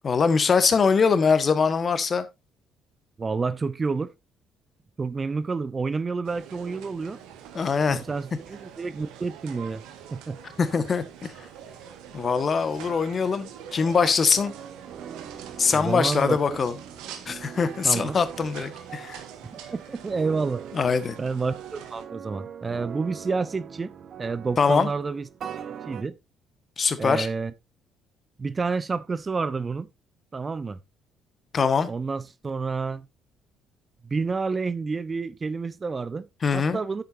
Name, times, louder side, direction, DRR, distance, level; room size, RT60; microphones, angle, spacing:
voice 1, 0.0-2.2 7.5-8.0 10.6-11.3 12.1-14.5 15.6-16.7 17.3-19.2 20.7-21.2 24.6-24.9 26.8-27.3 31.5-31.9 36.4-36.8, left 5 dB, 40° left, 1.5 m, -23 dB
voice 2, 3.2-4.1 5.0-7.2 7.9-9.8 10.1-10.4 15.7-16.4 17.8-18.2 19.7-20.6 21.2-23.9 24.2-25.3 25.9-26.2 27.0-27.5 28.4-29.9 30.3-30.8 31.9-33.1 34.0-36.3 36.5-37.0, right 4 dB, 35° right, 0.8 m, -29 dB
sound 1, 6.2-22.0, right 9 dB, 70° right, 1.7 m, -44 dB
sound 2, 14.1-26.0, right 8 dB, 55° right, 1.3 m, -42 dB
10.0 x 8.3 x 2.7 m
hypercardioid pair, 50°, 0 cm